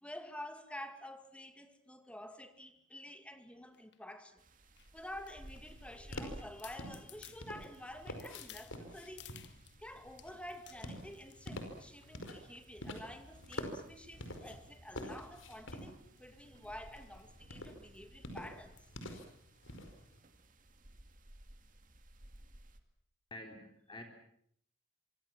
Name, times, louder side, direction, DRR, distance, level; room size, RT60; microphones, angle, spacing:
voice 1, 0.0-4.4 4.9-18.8, left 1 dB, 5° left, 2.3 m, -49 dB
sound 1, 3.7-4.0 4.8-5.8 6.2-6.3 6.6-9.8 10.2-11.6 12.1-12.3 12.6-13.0 13.4-15.2 15.7-15.9 16.2-16.3 16.5-16.7 17.1-17.3 17.7-17.8 18.8-19.0 19.6-19.7, left 12 dB, 60° left, 1.7 m, -58 dB
sound 2, 4.4-22.8, right 1 dB, 45° right, 2.4 m, -59 dB
sound 3, 5.4-20.2, left 1 dB, 90° left, 5.1 m, -48 dB
voice 2, 23.3-24.0, left 1 dB, 25° left, 3.8 m, -48 dB
26.5 x 24.5 x 7.5 m
head